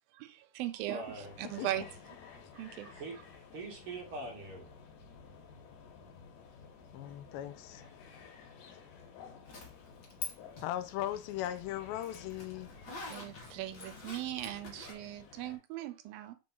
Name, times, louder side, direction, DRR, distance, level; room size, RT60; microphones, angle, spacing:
voice 1, 0.1-1.9 2.5-2.9 13.1-16.4, right 14 dB, 85° right, 2.5 m, -39 dB
voice 2, 0.9-1.9 3.0-3.2 3.5-4.7, right 2 dB, 55° right, 1.7 m, -43 dB
sound 1, 1.0-15.6, left 5 dB, 70° left, 2.8 m, -54 dB
voice 3, 6.9-7.8 10.6-12.7, left 13 dB, 90° left, 2.4 m, -38 dB
Zipper (clothing), 9.5-10.3 10.6-14.9, left 4 dB, 45° left, 1.6 m, -45 dB
5.3 x 3.8 x 5.4 m
omnidirectional pair, 4.2 m